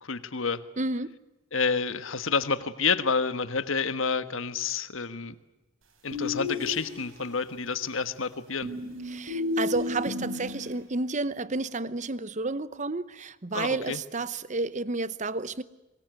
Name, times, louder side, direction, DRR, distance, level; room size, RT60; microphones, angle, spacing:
voice 1, 0.0-0.6 1.5-5.3 6.0-8.7 13.5-14.0, left 5 dB, 65° left, 1.4 m, -29 dB
voice 2, 0.8-1.1 9.1-15.6, right 3 dB, 35° right, 0.9 m, -31 dB
sound 1, 6.1-7.4 8.6-10.8, left 3 dB, 65° right, 4.5 m, -33 dB
25.5 x 22.0 x 8.2 m
head